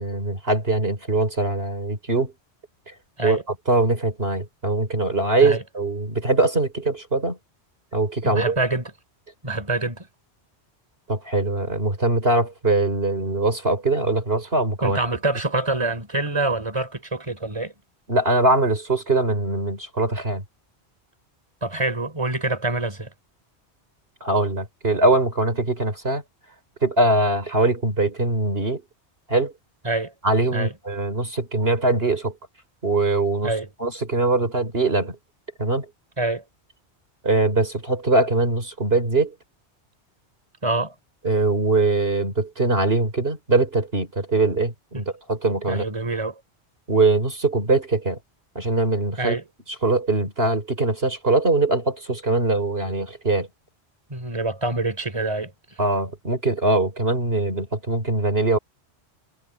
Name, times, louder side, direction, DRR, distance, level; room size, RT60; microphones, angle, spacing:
voice 1, 0.0-2.3 3.2-3.4 3.7-7.4 7.9-8.6 11.1-15.0 18.1-20.4 24.2-26.2 26.8-28.8 29.3-29.5 30.2-32.3 32.8-33.5 33.8-35.2 35.6-35.9 37.2-39.3 41.2-45.8 46.9-48.2 48.6-49.4 49.8-53.5 55.8-58.6, right 2 dB, 60° right, 4.0 m, -22 dB
voice 2, 8.2-8.9 9.4-10.1 14.8-17.7 21.6-23.1 29.8-30.1 30.5-30.7 33.4-33.7 36.2-36.4 40.6-40.9 44.9-45.1 45.7-46.4 49.2-49.4 54.1-55.5, right 2 dB, 25° right, 3.8 m, -26 dB
omnidirectional pair, 1.1 m